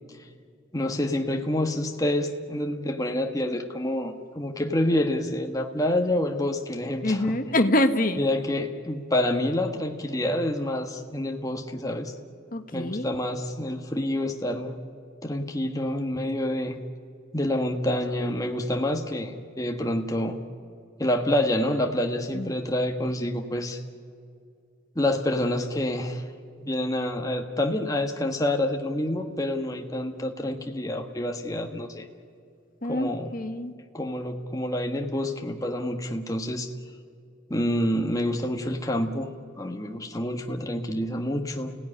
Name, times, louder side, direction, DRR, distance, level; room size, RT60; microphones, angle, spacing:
voice 1, 0.7-7.4 8.2-12.1 12.7-14.8 15.2-16.8 17.3-20.4 21.0-23.8 24.9-26.2 26.6-32.1 32.8-33.3 33.9-36.7 37.5-41.8, left 1 dB, 15° left, 3 dB, 1.4 m, -27 dB
voice 2, 7.0-8.2 12.5-13.1 22.3-22.5 32.8-33.7, left 1 dB, 45° left, 8 dB, 1.3 m, -25 dB
29.5 x 17.0 x 10.0 m, 2.4 s
head